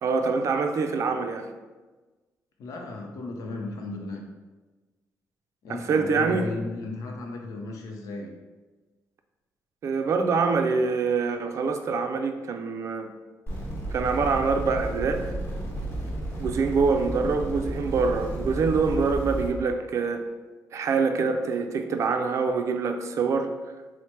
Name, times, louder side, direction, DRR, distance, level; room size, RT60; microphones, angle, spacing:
voice 1, 0.0-1.5 5.7-6.5 9.8-13.1 13.9-15.3 16.4-20.2 20.7-23.5, right 4 dB, 55° right, 6 dB, 0.4 m, -25 dB
voice 2, 2.6-4.2 5.6-8.4, left 2 dB, 70° left, 1 dB, 0.7 m, -35 dB
sound 1, 13.5-19.5, right 1 dB, 35° left, 1.4 m, -32 dB
4.3 x 2.1 x 4.4 m, 1.2 s
cardioid pair, 105°, 6 cm